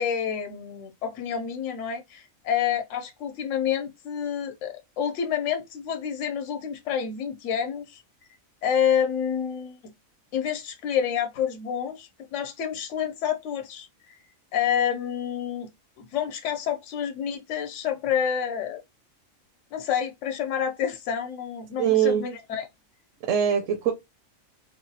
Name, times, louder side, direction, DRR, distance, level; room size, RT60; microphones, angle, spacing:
voice 1, 0.0-8.0 8.6-9.8 10.3-14.1 14.5-15.7 16.0-18.8 19.7-22.7, left 8 dB, 65° left, 1.0 m, -28 dB
voice 2, 21.8-22.2 23.2-23.9, right 9 dB, 70° right, 1.0 m, -22 dB
4.0 x 2.3 x 2.7 m
omnidirectional pair, 1.4 m